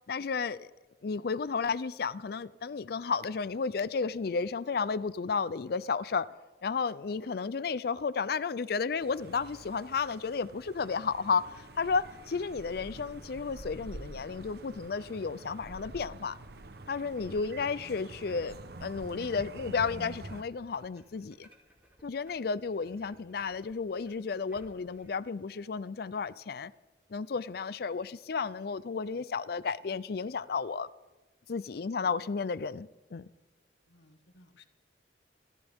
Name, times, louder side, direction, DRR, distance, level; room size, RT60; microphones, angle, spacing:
voice 1, 0.1-0.7 1.0-6.3 6.6-16.4 16.9-21.5 22.0-26.7 27.1-30.9 31.5-33.3, left 5 dB, 55° left, 0.4 m, -33 dB
sound 1, 9.0-20.4, right 2 dB, 60° right, 0.9 m, -47 dB
sound 2, 19.5-25.1, equal, 10° right, 2.6 m, -62 dB
voice 2, 31.8-32.3 33.9-34.6, left 1 dB, 75° left, 1.6 m, -60 dB
26.5 x 14.0 x 3.6 m
head